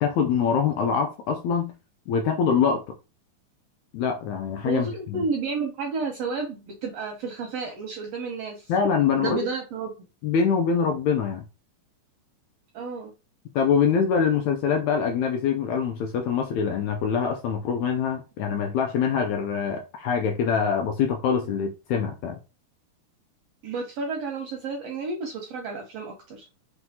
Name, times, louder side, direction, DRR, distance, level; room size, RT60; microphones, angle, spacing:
voice 1, 0.0-1.7 2.1-2.8 3.9-5.2 8.7-9.4 10.2-11.4 13.5-22.4, left 6 dB, 80° left, 1.6 m, -24 dB
voice 2, 4.6-8.7 9.2-10.1 12.7-13.1 23.6-26.5, right 4 dB, 80° right, 1.5 m, -31 dB
5.8 x 2.3 x 2.7 m
omnidirectional pair, 3.6 m